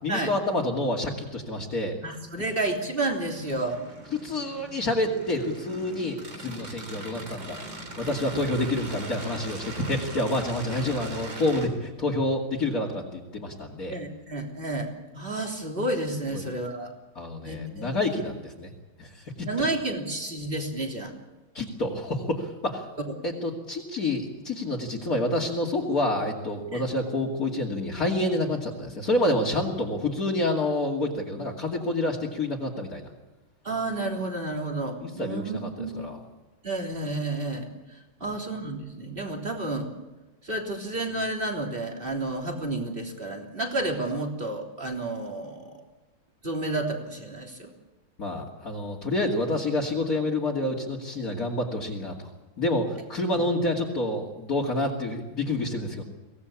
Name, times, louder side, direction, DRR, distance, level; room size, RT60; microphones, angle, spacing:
voice 1, 0.0-2.0 4.1-7.6 8.0-13.9 16.3-16.5 17.2-18.7 19.0-19.1 19.4-19.5 21.5-22.8 23.2-33.1 35.0-36.2 48.2-52.3 52.6-56.0, left 1 dB, 45° left, -4 dB, 3.0 m, -28 dB
voice 2, 2.0-3.8 9.9-10.0 13.9-16.9 17.4-18.2 19.4-21.1 26.7-26.9 33.6-36.0 36.6-39.9 40.4-45.8 46.4-47.7 53.3-53.4, right 2 dB, 25° right, 1 dB, 3.6 m, -31 dB
sound 1, 3.2-11.7, right 2 dB, 70° right, 4.3 m, -40 dB
24.0 x 17.5 x 8.6 m, 1.1 s
omnidirectional pair, 2.1 m